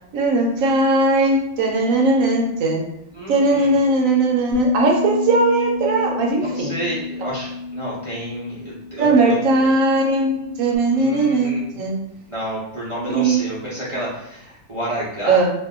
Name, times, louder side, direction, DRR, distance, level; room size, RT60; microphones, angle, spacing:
voice 1, 0.1-2.9 3.3-6.8 9.0-12.1 13.1-13.4 15.3-15.5, right 2 dB, 70° right, 0 dB, 0.9 m, -19 dB
voice 2, 3.1-3.8 6.4-9.7 10.9-11.8 12.3-15.4, equal, 50° right, -9 dB, 0.3 m, -30 dB
Bass guitar, 4.5-10.8, left 5 dB, 85° left, 1.2 m, -29 dB
2.7 x 2.1 x 3.5 m, 0.79 s
omnidirectional pair, 1.6 m